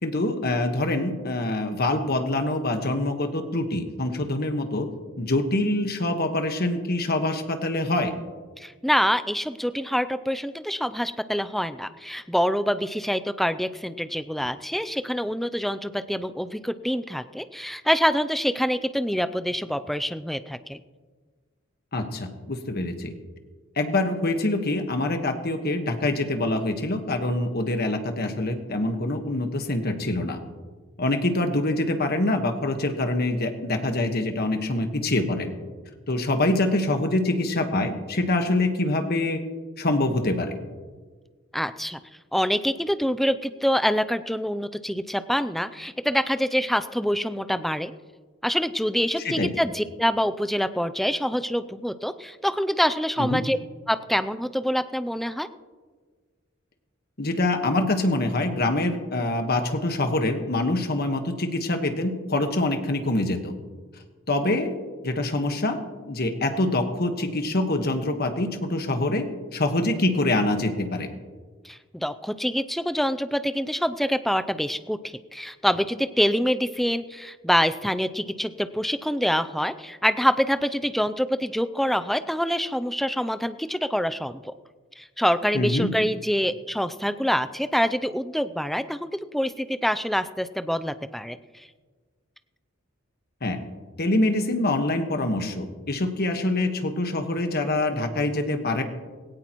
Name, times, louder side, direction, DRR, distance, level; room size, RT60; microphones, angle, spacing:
voice 1, 0.0-4.9 5.2-8.1 21.9-23.1 23.8-30.4 31.0-35.5 36.1-39.4 39.8-40.5 49.2-49.5 53.2-53.4 57.2-63.5 64.3-64.7 65.0-69.3 69.5-71.1 85.5-85.9 93.4-93.6 94.0-98.8, left 2 dB, 50° left, 6 dB, 1.4 m, -25 dB
voice 2, 8.6-20.8 41.5-42.0 42.3-47.9 48.4-53.6 53.9-55.5 71.6-84.5 85.0-91.7, equal, ahead, 11 dB, 0.4 m, -26 dB
18.0 x 17.0 x 3.0 m, 1.4 s
head